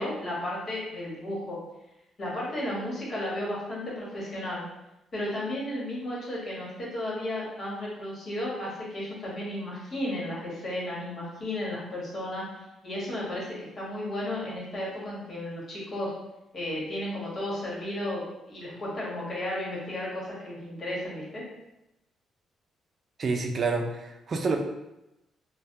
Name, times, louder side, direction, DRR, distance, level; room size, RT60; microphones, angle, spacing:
voice 1, 0.0-1.6 2.2-4.6 5.1-12.4 12.8-16.1 16.5-18.2 18.5-21.4, left 1 dB, 45° left, -5 dB, 1.3 m, -33 dB
voice 2, 23.2-24.6, right 4 dB, 45° right, 3 dB, 0.4 m, -28 dB
3.2 x 2.2 x 2.7 m, 0.92 s
cardioid pair, 90°, 0 cm